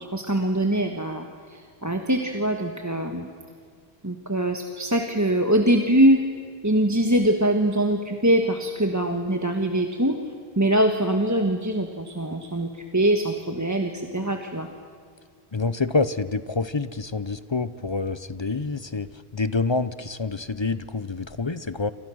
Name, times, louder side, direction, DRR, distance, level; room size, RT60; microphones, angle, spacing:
voice 1, 0.0-3.3 4.0-6.2 6.6-10.2 10.6-14.7, right 1 dB, 15° right, 4 dB, 1.4 m, -23 dB
voice 2, 15.5-21.9, left 3 dB, 30° left, 14 dB, 0.7 m, -27 dB
29.0 x 26.5 x 6.4 m, 2.1 s
omnidirectional pair, 1.1 m